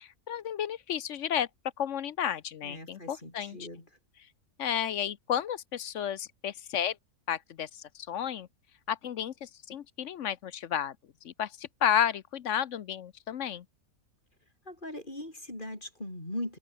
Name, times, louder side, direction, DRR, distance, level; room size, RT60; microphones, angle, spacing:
voice 1, 0.0-1.5 1.8-3.6 4.6-7.0 7.3-8.5 8.9-11.0 11.2-13.6, left 9 dB, 60° left, 1.0 m, -32 dB
voice 2, 2.6-3.9 14.6-16.6, left 1 dB, 30° left, 6.5 m, -40 dB
omnidirectional pair, 1.6 m